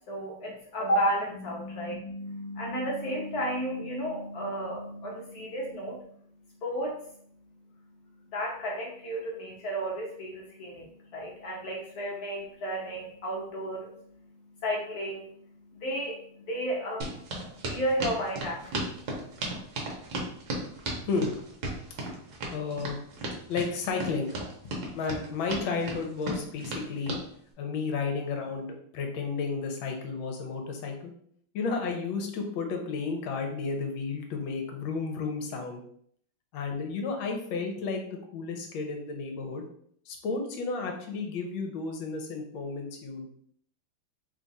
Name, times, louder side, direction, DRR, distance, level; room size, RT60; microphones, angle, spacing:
voice 1, 0.1-6.1 6.6-7.0 8.3-17.2 17.6-19.0, equal, 60° left, -2 dB, 1.0 m, -33 dB
sound 1, 17.0-27.2, right 2 dB, 70° right, 1.6 m, -35 dB
voice 2, 22.5-23.0 23.5-24.3 24.9-27.1 27.6-31.1 31.5-35.8 36.5-39.6 40.1-43.3, left 4 dB, 75° left, 3 dB, 1.5 m, -32 dB
3.7 x 2.4 x 4.0 m, 0.63 s
omnidirectional pair, 2.3 m